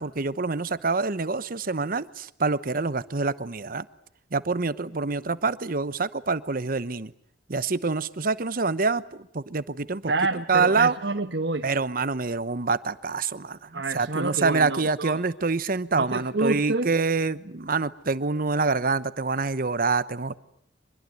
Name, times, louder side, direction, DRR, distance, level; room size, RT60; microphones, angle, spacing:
voice 1, 0.0-3.8 4.3-7.1 7.5-10.9 11.6-20.4, right 4 dB, 50° right, 15 dB, 1.0 m, -26 dB
voice 2, 10.0-11.7 13.7-15.2 16.0-16.9, right 3 dB, 70° right, 6 dB, 1.2 m, -28 dB
24.5 x 21.5 x 9.4 m, 0.69 s
head